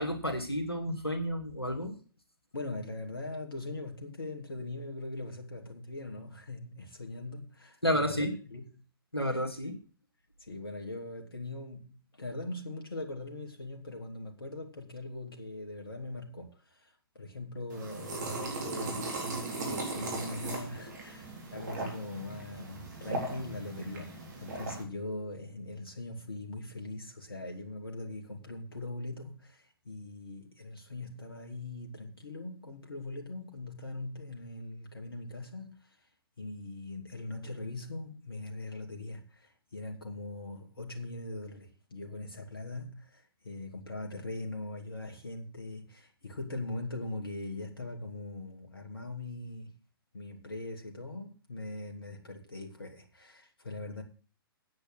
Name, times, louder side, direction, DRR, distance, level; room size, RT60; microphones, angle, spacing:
voice 1, 0.0-1.9 7.8-8.3 9.1-9.8, equal, 90° left, 2.6 m, -31 dB
voice 2, 2.5-8.6 9.3-9.4 10.4-19.2 19.6-36.0 36.4-49.7 50.1-54.0, left 2 dB, 70° left, 2.6 m, -41 dB
sound 1, 17.7-24.8, right 2 dB, 50° right, 4.1 m, -38 dB
9.3 x 8.8 x 6.4 m
figure-of-eight pair, 120°, 13 cm